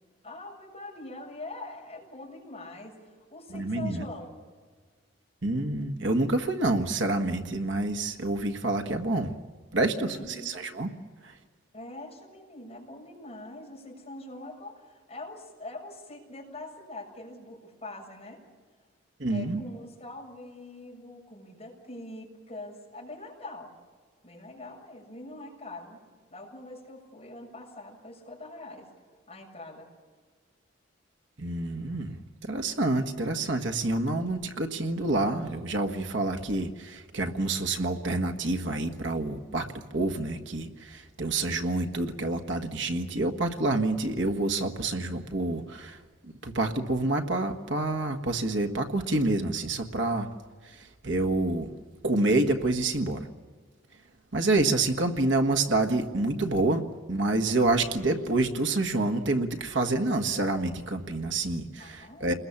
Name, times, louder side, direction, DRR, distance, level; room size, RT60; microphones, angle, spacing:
voice 1, 0.2-4.3 10.0-10.6 11.7-18.4 19.3-23.7 24.2-26.0 26.3-28.9 29.3-29.9 61.8-62.4, left 2 dB, 30° left, -2 dB, 7.0 m, -43 dB
voice 2, 3.5-4.0 5.4-9.3 9.7-10.9 11.2-11.3 19.2-19.6 31.4-46.0 46.4-50.3 50.6-51.7 52.0-53.3 54.3-56.8 57.1-62.3, right 2 dB, 65° right, 5 dB, 1.5 m, -28 dB
29.5 x 21.0 x 7.3 m, 1.5 s
head